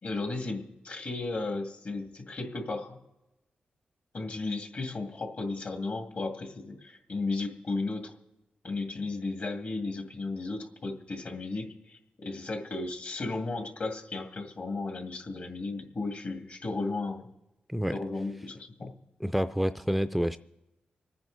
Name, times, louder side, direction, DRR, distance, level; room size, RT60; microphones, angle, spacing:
voice 1, 0.0-3.0 4.1-8.1 8.6-17.3 17.9-18.9, left 3 dB, 55° left, 4 dB, 2.2 m, -34 dB
voice 2, 19.2-20.4, equal, ahead, 11 dB, 0.4 m, -28 dB
26.5 x 9.5 x 4.0 m, 0.95 s
cardioid pair, 85°, 3 cm